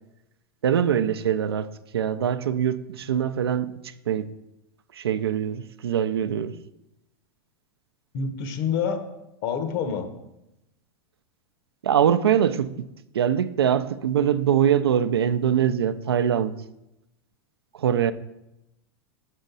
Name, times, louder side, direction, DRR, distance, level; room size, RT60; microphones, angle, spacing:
voice 1, 0.6-3.7 4.1-4.3 4.9-6.6 11.8-12.7 13.1-16.5 17.7-18.1, right 9 dB, 85° right, 0.5 m, -23 dB
voice 2, 8.1-9.0 9.4-10.1, left 6 dB, 55° left, 1.1 m, -27 dB
8.0 x 6.4 x 4.0 m
hypercardioid pair, 105°, 13 cm